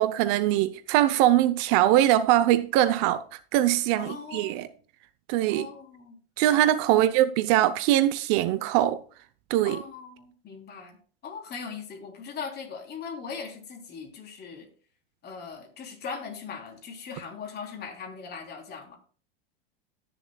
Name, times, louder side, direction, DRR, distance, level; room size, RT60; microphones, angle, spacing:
voice 1, 0.0-4.7 5.3-5.7 6.4-9.0 9.5-9.8, right 13 dB, 50° right, 0.7 m, -22 dB
voice 2, 4.0-4.7 5.5-6.2 6.9-7.1 9.6-11.0 11.2-14.7 15.2-19.0, left 5 dB, 35° left, 3.3 m, -40 dB
17.0 x 6.9 x 2.3 m
supercardioid pair, 115°, 30 cm